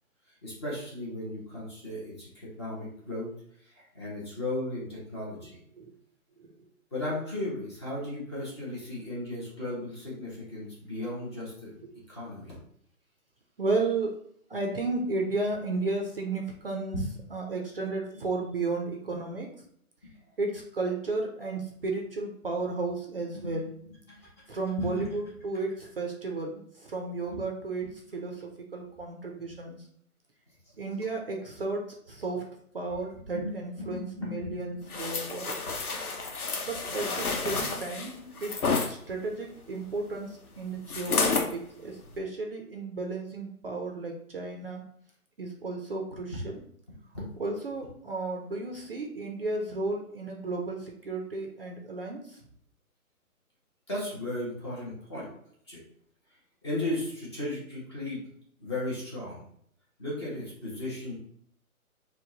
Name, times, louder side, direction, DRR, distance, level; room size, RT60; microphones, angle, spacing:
voice 1, 0.4-3.3 3.6-5.6 6.9-11.8 12.1-12.5 16.9-17.1 20.0-20.1 23.3-23.4 24.1-24.2 24.8-25.1 27.3-27.4 33.3-34.9 47.1-47.3 53.9-55.3 55.7-55.8 56.6-58.2 58.6-59.4 60.0-61.1, left 1 dB, 20° left, -5 dB, 0.8 m, -35 dB
voice 2, 13.6-14.2 14.5-19.5 20.4-23.7 24.5-29.8 30.8-32.5 32.7-35.6 36.6-38.6 38.9-44.8 45.4-46.6 47.4-52.4, right 3 dB, 40° right, 1 dB, 0.5 m, -33 dB
sound 1, 34.9-38.9 40.9-41.5 42.0-42.2, left 4 dB, 75° left, 0.9 m, -30 dB
4.5 x 2.2 x 3.8 m, 0.66 s
hypercardioid pair, 155°, 44 cm